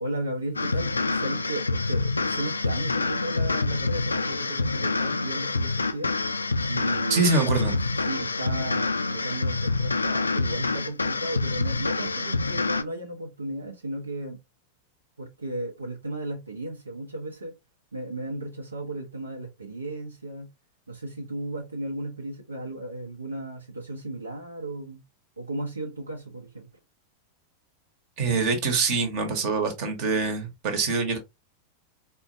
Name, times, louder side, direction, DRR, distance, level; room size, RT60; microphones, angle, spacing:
voice 1, 0.0-6.1 6.7-7.6 8.1-14.4 15.2-17.6 17.9-20.5 20.9-25.0 25.4-26.7, right 1 dB, 80° right, 0.7 m, -35 dB
sound 1, 0.6-12.8, left 3 dB, 80° left, 0.3 m, -27 dB
voice 2, 7.1-7.8 28.2-31.2, right 4 dB, 45° right, 1.0 m, -24 dB
4.2 x 2.2 x 2.6 m
figure-of-eight pair, 90°, 0 cm